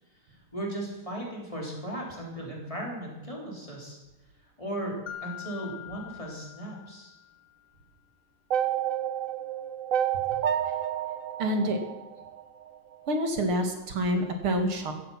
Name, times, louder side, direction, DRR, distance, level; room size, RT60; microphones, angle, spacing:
voice 1, 0.5-4.0 4.6-7.1, right 1 dB, 15° left, -2 dB, 4.4 m, -36 dB
Mallet percussion, 5.1-7.6, left 11 dB, 45° left, 1.1 m, -44 dB
sound 1, 8.5-12.7, right 10 dB, 60° right, 0.8 m, -29 dB
voice 2, 11.4-11.8 13.1-14.9, equal, 80° right, 5 dB, 2.9 m, -27 dB
16.0 x 15.0 x 5.9 m, 1.0 s
omnidirectional pair, 2.3 m